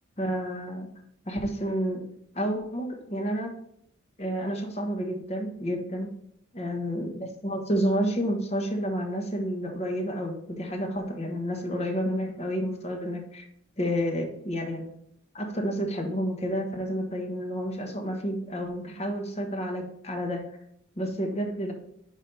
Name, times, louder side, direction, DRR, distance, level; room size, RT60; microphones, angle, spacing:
voice 1, 0.2-0.9 1.2-2.0 2.3-3.5 4.2-6.1 6.5-13.5 13.8-14.8 15.3-20.4 21.0-21.7, equal, 30° left, 2 dB, 1.1 m, -30 dB
5.1 x 4.4 x 5.4 m, 0.73 s
head